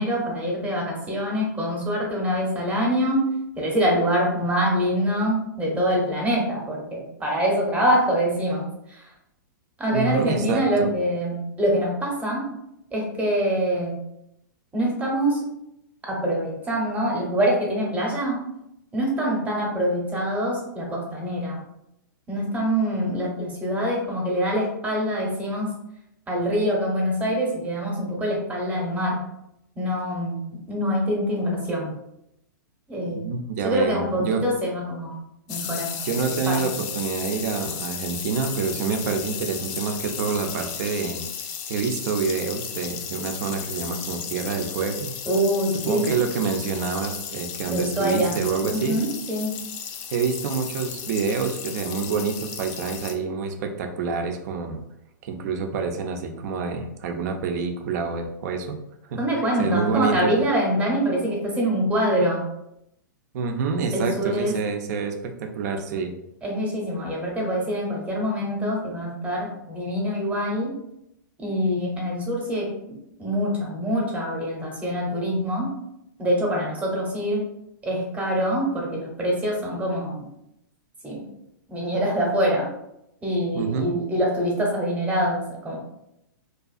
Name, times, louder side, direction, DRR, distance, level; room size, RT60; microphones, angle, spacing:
voice 1, 0.0-3.3 3.6-9.1 9.8-12.5 12.9-14.0 14.7-15.4 16.0-18.4 18.9-21.6 22.3-25.7 26.3-29.3 29.7-31.9 32.9-33.3 33.6-35.2 35.5-36.8 45.3-46.1 47.7-48.4 48.7-49.5 59.2-62.5 63.9-64.6 66.4-70.8 71.4-75.8 76.2-77.4 77.8-80.3 81.0-81.3 81.7-82.7 83.2-85.8, equal, 10° right, -2 dB, 0.8 m, -25 dB
voice 2, 9.9-10.9 33.1-34.4 36.0-41.2 41.7-45.1 45.8-49.0 50.1-54.8 55.2-58.8 59.1-59.2 59.6-60.3 63.3-66.1 83.5-84.0, right 5 dB, 55° right, 5 dB, 0.4 m, -27 dB
sound 1, 35.5-53.1, left 7 dB, 40° left, 0.4 m, -34 dB
2.5 x 2.3 x 2.4 m, 0.81 s
hypercardioid pair, 120°, 11 cm